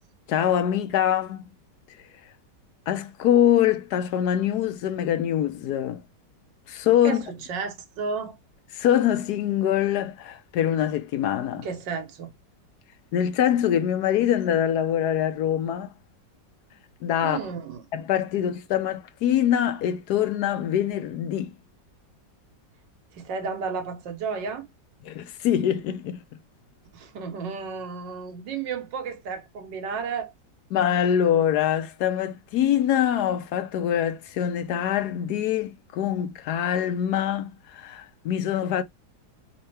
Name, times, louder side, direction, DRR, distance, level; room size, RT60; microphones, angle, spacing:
voice 1, 0.3-1.4 2.9-6.0 6.7-7.2 8.7-11.7 13.1-15.9 17.0-17.4 17.9-21.5 25.0-26.2 30.7-38.8, left 10 dB, 70° left, 1.1 m, -24 dB
voice 2, 7.0-8.3 11.5-12.3 17.2-17.8 23.1-24.7 26.9-30.3, right 5 dB, 85° right, 1.7 m, -32 dB
4.3 x 3.8 x 3.2 m
omnidirectional pair, 1.9 m